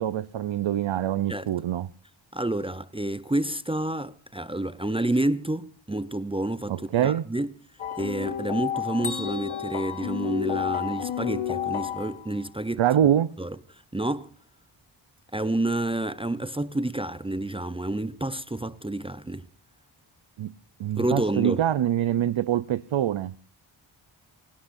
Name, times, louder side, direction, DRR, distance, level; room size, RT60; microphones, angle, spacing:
voice 1, 0.0-1.9 6.7-7.2 12.8-13.3 20.4-20.5 20.8-23.4, right 11 dB, 70° right, 0.8 m, -24 dB
voice 2, 2.3-7.5 8.0-13.1 13.4-13.6 13.9-14.3 15.3-19.4 21.0-21.6, right 1 dB, 10° right, 0.7 m, -29 dB
sound 1, 7.8-12.4, left 10 dB, 80° left, 1.2 m, -31 dB
Bell, 9.0-11.1, left 4 dB, 40° left, 3.4 m, -39 dB
29.5 x 17.5 x 2.6 m
wide cardioid pair, 110°, 48 cm